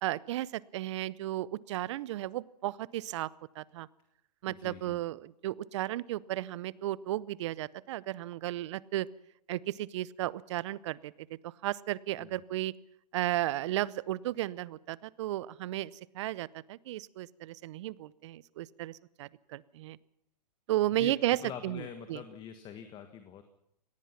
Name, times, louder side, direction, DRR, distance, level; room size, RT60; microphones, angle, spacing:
voice 1, 0.0-3.3 3.6-3.9 4.4-9.1 9.5-11.1 11.4-12.7 13.1-20.0 20.7-21.4 21.6-21.8 22.1-22.2, right 15 dB, 45° right, 22 dB, 0.7 m, -34 dB
voice 2, 4.5-5.0 12.2-12.3 20.9-23.4, left 8 dB, 20° left, 8 dB, 1.6 m, -45 dB
24.0 x 18.5 x 5.9 m, 0.75 s
hypercardioid pair, 130°, 21 cm